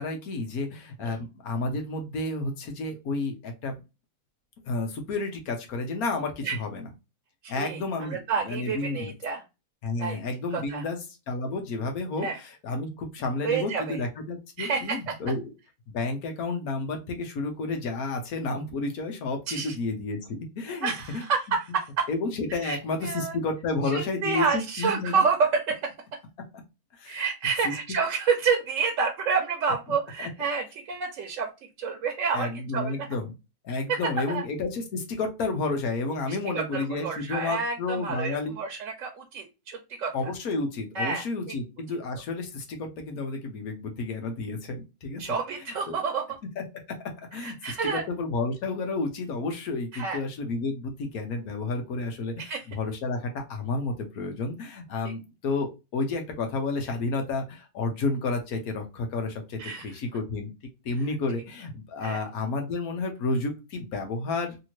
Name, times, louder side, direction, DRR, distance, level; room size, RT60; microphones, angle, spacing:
voice 1, 0.0-3.8 4.6-6.9 7.5-9.1 9.8-11.0 11.3-15.5 15.9-21.3 22.1-25.2 26.9-27.2 27.6-27.7 30.2-30.3 32.3-33.3 33.6-38.5 40.1-45.4 45.9-46.0 46.6-46.7 47.3-60.5 60.8-64.6, left 3 dB, 85° left, 4 dB, 1.4 m, -31 dB
voice 2, 7.4-9.4 10.0-10.2 10.7-10.8 12.2-12.4 13.4-14.0 14.6-15.1 19.5-19.8 20.8-22.1 22.6-23.4 23.9-25.9 27.1-33.1 33.9-34.0 34.3-34.4 36.3-40.3 40.9-41.5 45.2-46.2 47.3-48.0 49.9-50.2 52.4-52.6 59.6-59.9 62.0-62.2, right 5 dB, 65° right, 2 dB, 1.0 m, -29 dB
3.3 x 2.8 x 2.9 m, 0.26 s
omnidirectional pair, 1.5 m